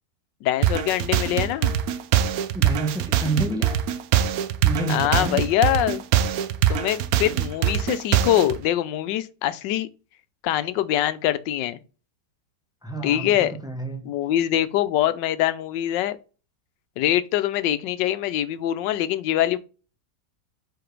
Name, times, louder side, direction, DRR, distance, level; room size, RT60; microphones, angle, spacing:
voice 1, 0.4-1.7 4.9-6.0 6.7-9.9 10.4-11.8 13.0-13.5 14.0-16.2 17.0-19.6, left 12 dB, 90° left, 1.3 m, -23 dB
sound 1, 0.6-8.6, right 10 dB, 70° right, 0.9 m, -23 dB
voice 2, 2.5-3.8 4.6-5.4 12.8-14.1, right 3 dB, 5° right, 0.4 m, -29 dB
4.9 x 4.5 x 4.6 m
omnidirectional pair, 1.9 m